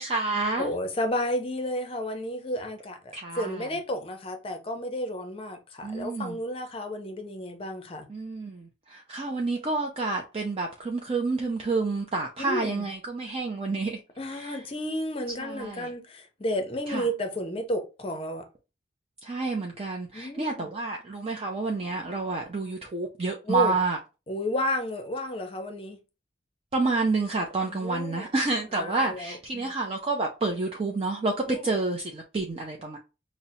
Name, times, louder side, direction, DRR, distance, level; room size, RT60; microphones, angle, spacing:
voice 1, 0.0-0.7 3.1-3.7 5.8-6.4 8.1-14.0 14.3-14.6 15.4-15.9 16.9-17.1 19.2-24.0 26.7-33.0, right 3 dB, 30° right, 0.4 m, -29 dB
voice 2, 0.6-8.1 12.4-12.9 14.2-18.5 20.1-20.6 23.5-23.8 24.3-26.0 27.7-28.3 28.8-29.7 31.5-31.7, equal, 30° left, 0.6 m, -32 dB
5.4 x 2.0 x 2.7 m
head